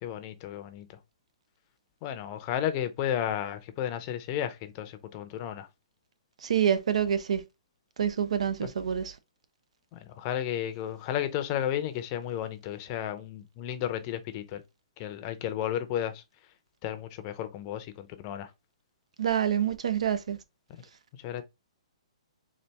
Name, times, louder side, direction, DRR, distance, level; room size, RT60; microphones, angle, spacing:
voice 1, 0.0-0.9 2.0-5.7 8.6-8.7 9.9-14.6 15.0-16.2 16.8-18.5 21.2-21.4, left 10 dB, 30° left, 0.6 m, -33 dB
voice 2, 6.4-7.4 8.0-9.1 19.2-20.4, right 8 dB, 75° right, 0.7 m, -27 dB
4.1 x 2.5 x 3.3 m
hypercardioid pair, 150°, 3 cm